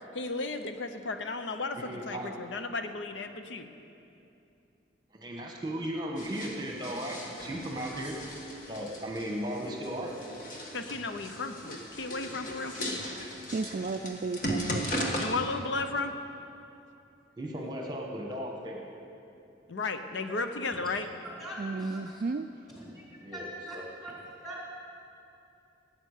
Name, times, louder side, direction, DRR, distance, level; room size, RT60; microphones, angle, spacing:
voice 1, 0.1-3.7 10.7-12.7 15.2-16.1 19.7-21.1, left 3 dB, 85° left, 8 dB, 0.7 m, -34 dB
voice 2, 1.8-2.4 5.1-8.2 8.7-10.3 17.4-18.9 23.2-23.5 23.7-23.8, equal, 25° right, 0 dB, 1.2 m, -36 dB
sound 1, 6.2-15.3, equal, 45° left, 1.6 m, -37 dB
voice 3, 13.5-15.2 21.6-22.5, right 3 dB, 45° right, 7 dB, 0.3 m, -34 dB
voice 4, 21.4-22.2 22.7-23.0 23.3-23.8 24.0-24.1 24.4-24.7, equal, ahead, -6 dB, 3.3 m, -42 dB
16.5 x 8.8 x 6.6 m, 2.7 s
head